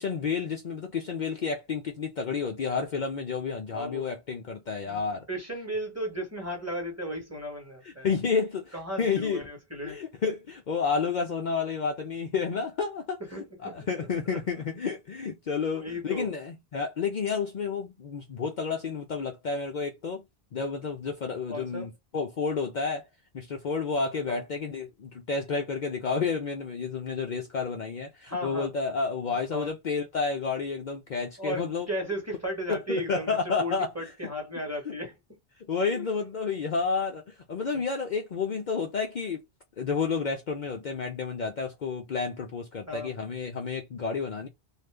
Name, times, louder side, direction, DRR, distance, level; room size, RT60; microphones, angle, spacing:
voice 1, 0.0-5.3 7.8-9.4 9.8-13.2 13.6-20.2 20.5-23.1 23.3-31.9 32.7-34.1 34.9-35.0 35.7-39.4 39.8-44.5, left 5 dB, 55° left, 0.6 m, -30 dB
voice 2, 3.7-4.0 4.8-5.0 5.3-8.1 8.7-10.0 13.3-14.4 15.7-16.3 21.5-21.9 24.3-24.4 28.3-28.7 29.5-29.7 31.4-35.2 35.9-36.0 37.7-37.8 42.9-43.1, equal, 15° right, 1.1 m, -35 dB
2.7 x 2.4 x 3.3 m
omnidirectional pair, 1.1 m